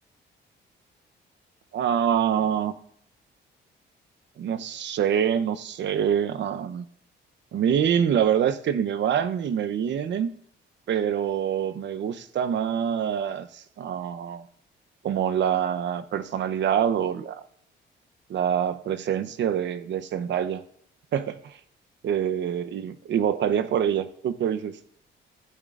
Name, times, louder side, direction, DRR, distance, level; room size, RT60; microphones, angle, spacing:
voice 1, 1.7-2.7 4.4-6.8 7.5-10.3 10.9-14.4 15.0-17.4 18.3-20.6 21.1-21.5 22.0-24.8, right 8 dB, 65° right, 12 dB, 0.8 m, -25 dB
14.5 x 8.9 x 2.5 m, 0.70 s
cardioid pair, 90°, 20 cm